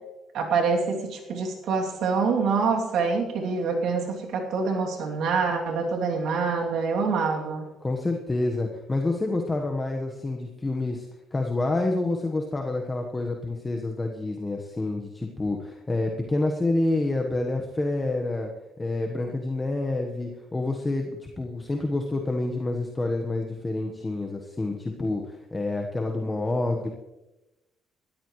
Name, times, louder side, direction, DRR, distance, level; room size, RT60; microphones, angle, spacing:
voice 1, 0.3-7.6, right 4 dB, 70° right, 1 dB, 2.8 m, -26 dB
voice 2, 7.8-11.1 11.3-18.5 18.8-26.9, left 2 dB, 20° left, 2 dB, 1.3 m, -28 dB
19.5 x 13.5 x 3.2 m, 1.0 s
cardioid pair, 120°, 0 cm